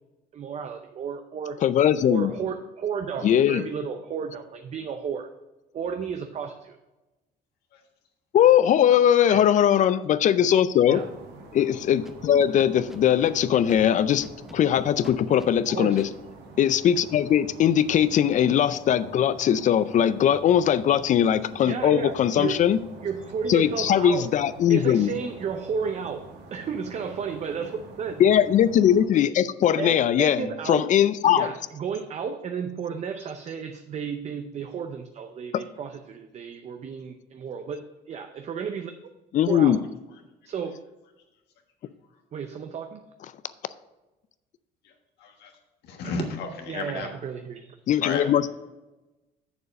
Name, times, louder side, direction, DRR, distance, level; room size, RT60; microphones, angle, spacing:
voice 1, 0.3-1.6 2.1-5.3 5.7-6.8 9.3-9.6 10.9-11.1 15.7-16.0 21.6-22.7 23.0-24.3 24.7-26.2 26.5-28.2 29.8-30.9 31.3-38.9 39.4-39.8 40.4-40.8 42.3-43.0 46.7-47.8, right 6 dB, 40° right, 7 dB, 0.6 m, -33 dB
voice 2, 1.6-2.3 3.2-3.6 8.3-11.0 11.5-14.3 14.5-16.1 16.6-22.8 23.5-25.1 28.2-31.5 39.3-39.8 47.9-48.5, left 10 dB, 45° left, 16 dB, 0.4 m, -20 dB
sound 1, 11.0-29.0, right 3 dB, 85° right, 1.4 m, -46 dB
Scratching (performance technique), 12.0-13.3 13.7-13.8 14.2-15.5 16.0-16.1, equal, ahead, 0.7 m, -43 dB
voice 3, 45.2-45.6 45.8-47.1 48.0-48.5, left 4 dB, 80° left, 4 dB, 1.4 m, -33 dB
6.9 x 6.8 x 5.1 m, 1.1 s
cardioid pair, 110°, 17 cm